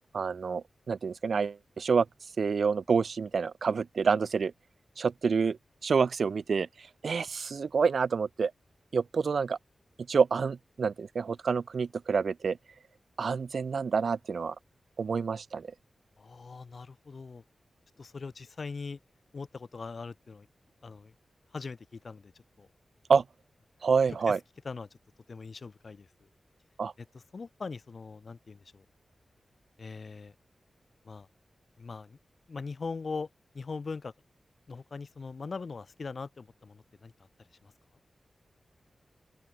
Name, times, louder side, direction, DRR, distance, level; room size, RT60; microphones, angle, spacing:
voice 1, 0.1-2.1 2.4-4.5 5.0-8.5 8.9-9.6 10.1-12.6 13.2-14.5 15.0-15.7 23.1-23.2 23.8-24.4 26.8-26.9, right 5 dB, 70° right, 0.6 m, -28 dB
voice 2, 16.2-17.4 18.0-19.0 19.3-20.5 20.8-21.1 21.5-22.7 24.3-24.4 24.6-24.9 25.3-26.1 27.0-27.1 27.3-28.8 29.8-30.3 31.0-31.3 31.8-32.2 32.5-33.3 33.5-34.1 34.7-37.1 37.6-37.7, left 4 dB, 55° left, 2.6 m, -41 dB
open air
wide cardioid pair, 105°, 0 cm